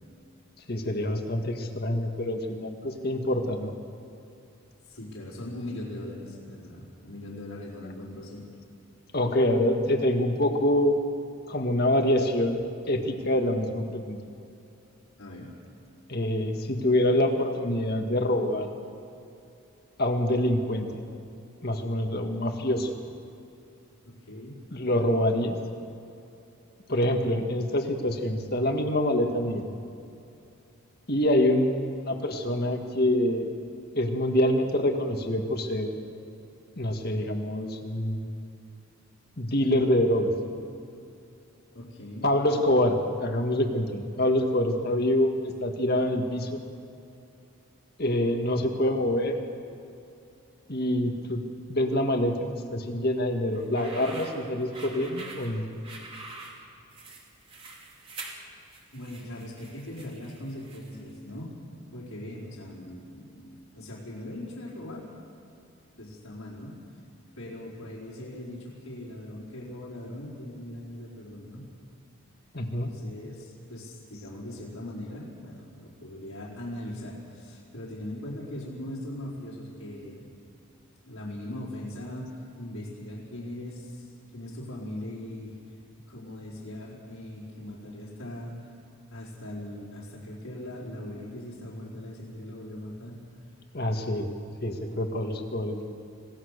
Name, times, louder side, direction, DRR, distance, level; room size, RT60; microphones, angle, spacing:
voice 1, 0.7-3.7 9.1-11.0 11.5-14.2 16.1-18.7 20.0-21.0 21.6-22.9 24.7-25.6 26.9-29.6 31.1-33.5 34.0-36.0 36.8-38.2 39.4-40.3 42.2-46.6 48.0-49.4 50.7-51.4 51.7-52.3 52.7-55.6 72.5-72.9 93.7-94.3 94.6-95.8, left 1 dB, 45° left, 4 dB, 1.9 m, -26 dB
voice 2, 4.9-8.4 15.2-15.5 24.0-24.6 41.7-42.3 58.9-61.6 61.9-63.5 63.7-65.1 66.0-66.7 67.4-71.7 72.7-80.3 81.0-85.5 86.1-88.7 89.1-93.5, left 1 dB, 85° left, -8 dB, 4.9 m, -40 dB
sound 1, 53.5-61.1, right 2 dB, 25° right, 2.7 m, -45 dB
27.0 x 17.5 x 6.8 m, 2.7 s
head